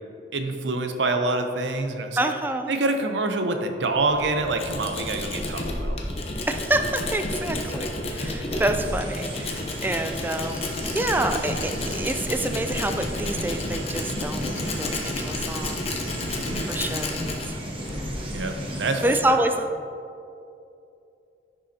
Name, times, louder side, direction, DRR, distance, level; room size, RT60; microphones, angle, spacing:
voice 1, 0.3-2.3 2.7-6.0 16.3-16.6 18.3-18.5 18.8-19.4, right 2 dB, 85° right, 6 dB, 0.7 m, -26 dB
voice 2, 2.2-2.7 6.5-15.9 16.6-17.6 19.0-19.8, right 1 dB, 10° right, 7 dB, 0.3 m, -27 dB
Tools, 3.9-19.3, left 2 dB, 35° left, 0.8 m, -31 dB
sound 1, 8.8-19.2, equal, 30° right, 1.0 m, -36 dB
10.0 x 5.5 x 2.8 m, 2.6 s
head